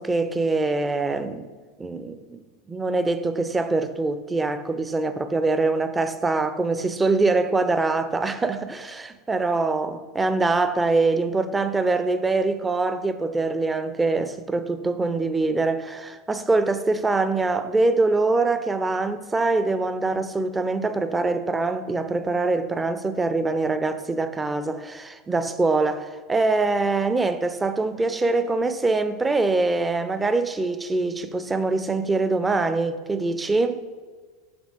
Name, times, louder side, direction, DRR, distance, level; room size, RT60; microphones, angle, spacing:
voice 1, 0.0-1.5 1.8-2.4 2.7-33.8, right 3 dB, 15° right, 0.4 m, -24 dB
6.1 x 3.3 x 5.1 m
figure-of-eight pair, 80°, 0 cm